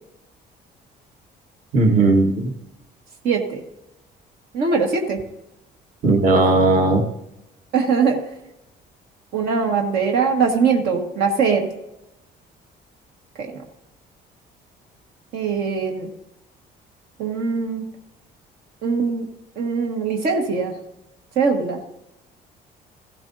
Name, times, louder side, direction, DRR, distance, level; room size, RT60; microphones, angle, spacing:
voice 1, 1.7-2.3 6.0-7.0, right 3 dB, 55° right, 2 dB, 1.5 m, -16 dB
voice 2, 3.2-3.6 4.5-5.2 7.7-8.2 9.3-11.7 13.4-13.5 15.3-16.1 17.2-17.8 18.8-19.3 19.6-20.7 21.3-21.8, right 5 dB, 70° right, 2 dB, 1.5 m, -21 dB
15.0 x 12.5 x 2.7 m, 0.91 s
cardioid pair, 110°, 17 cm